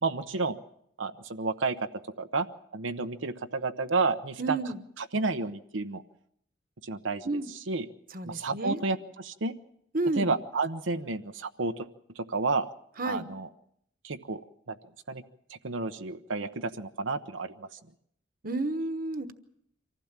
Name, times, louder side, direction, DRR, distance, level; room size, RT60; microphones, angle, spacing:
voice 1, 0.0-0.6 1.0-1.8 2.2-2.5 2.7-4.6 5.0-6.0 6.8-7.9 8.2-9.6 10.2-11.9 12.2-12.7 13.0-13.5 14.0-14.4 14.7-14.8 15.1-15.2 15.5-17.8, right 3 dB, 90° right, 7 dB, 0.9 m, -31 dB
voice 2, 4.4-4.8 7.2-7.5 8.1-8.8 9.9-10.3 13.0-13.3 18.4-19.3, right 2 dB, 50° right, 10 dB, 1.2 m, -31 dB
25.0 x 15.5 x 7.3 m, 0.72 s
head